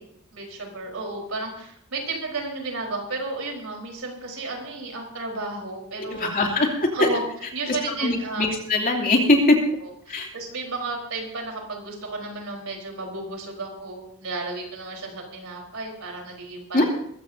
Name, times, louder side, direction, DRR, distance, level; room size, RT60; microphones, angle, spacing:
voice 1, 0.3-6.3 6.9-7.2 7.5-8.5 9.8-16.9, right 3 dB, 65° right, 1 dB, 4.3 m, -33 dB
voice 2, 6.0-7.1 7.7-9.6 10.1-10.3 16.7-16.8, left 2 dB, 40° left, 1 dB, 2.9 m, -21 dB
21.5 x 15.0 x 2.8 m, 0.72 s
head